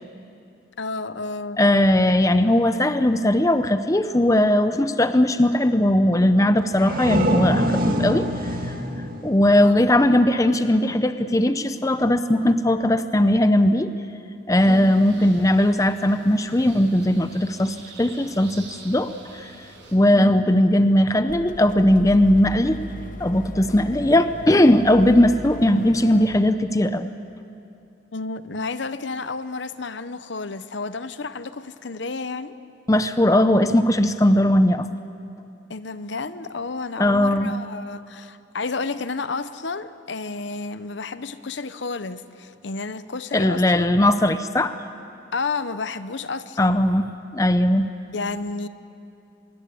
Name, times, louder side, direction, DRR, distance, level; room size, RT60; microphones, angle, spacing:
voice 1, 0.8-1.6 9.5-9.8 14.7-15.0 20.1-20.3 28.1-32.6 35.7-43.9 45.3-46.8 48.1-48.7, left 4 dB, 65° left, 0.8 m, -31 dB
voice 2, 1.6-8.3 9.2-13.9 14.5-19.1 19.4-19.5 19.9-22.8 23.2-27.1 32.9-34.9 37.0-37.5 43.3-44.8 46.6-47.9, left 1 dB, 15° left, 0.6 m, -19 dB
sound 1, 6.6-10.2, right 1 dB, 45° right, 2.1 m, -25 dB
sound 2, 14.5-19.9, right 3 dB, 70° right, 5.9 m, -46 dB
sound 3, 21.3-26.3, left 1 dB, 40° left, 1.0 m, -36 dB
25.5 x 22.5 x 8.4 m
head